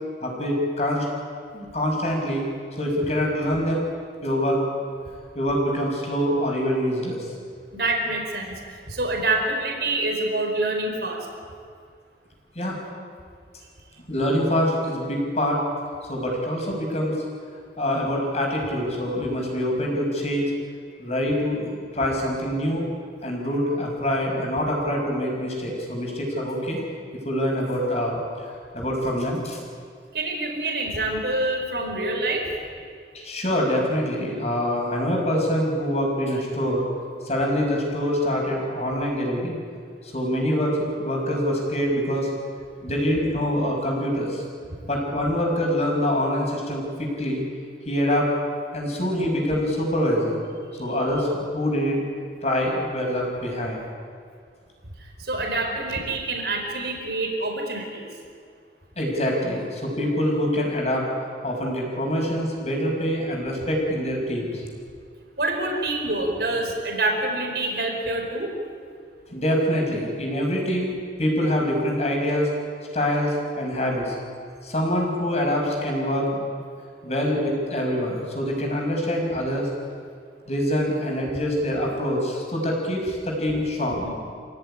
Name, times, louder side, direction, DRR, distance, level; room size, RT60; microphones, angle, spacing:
voice 1, 0.2-1.1 1.5-2.4 2.8-3.9 4.2-4.6 5.3-7.3 12.5-12.8 14.1-15.6 16.1-17.2 17.8-20.5 21.0-22.9 23.2-26.8 27.2-28.2 28.7-29.6 33.1-36.8 37.2-39.6 40.0-42.3 42.8-44.4 44.9-47.4 47.9-48.3 48.7-50.4 50.8-52.0 52.4-53.8 59.0-61.1 61.4-64.6 69.3-72.5 72.9-74.1 74.6-76.5 77.0-79.7 80.5-84.1, equal, 40° left, -1 dB, 5.9 m, -25 dB
voice 2, 7.7-8.6 8.9-11.3 30.1-32.5 55.0-58.1 65.4-68.5 84.0-84.1, right 2 dB, 65° right, 2 dB, 4.8 m, -26 dB
27.5 x 16.5 x 10.0 m, 2.2 s
head